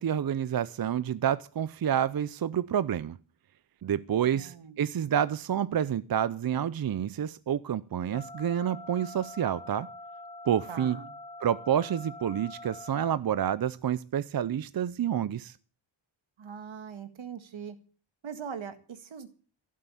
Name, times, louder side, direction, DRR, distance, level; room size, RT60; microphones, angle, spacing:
voice 1, 0.0-3.2 3.8-9.9 10.5-11.0 11.4-15.6, right 9 dB, 50° right, 0.6 m, -29 dB
voice 2, 4.2-4.8 10.7-11.2 16.4-17.8 18.2-19.3, right 7 dB, 80° right, 1.9 m, -41 dB
sound 1, 8.1-13.1, left 2 dB, 10° left, 1.4 m, -45 dB
16.0 x 7.6 x 8.3 m
wide cardioid pair, 110°, 46 cm